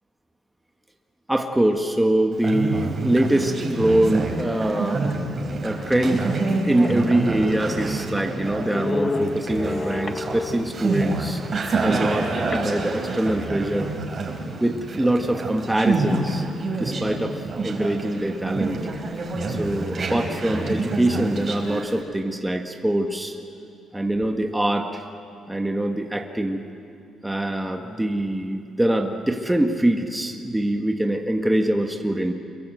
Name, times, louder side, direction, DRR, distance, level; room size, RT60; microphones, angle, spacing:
voice 1, 1.3-5.0 5.6-6.2 6.6-11.4 11.8-13.9 14.6-16.4 16.8-18.8 19.5-23.4 23.9-25.0 25.5-26.6 27.2-32.3, right 1 dB, 10° right, 3 dB, 1.6 m, -23 dB
Conversation, 2.3-22.0, right 3 dB, 40° right, 4.0 m, -28 dB
sound 1, 5.8-5.9 6.5-6.6 6.8-10.8 12.5-13.6, left 3 dB, 30° left, 1.2 m, -32 dB
25.0 x 22.5 x 8.0 m, 2.5 s
cardioid pair, 90°, 0 cm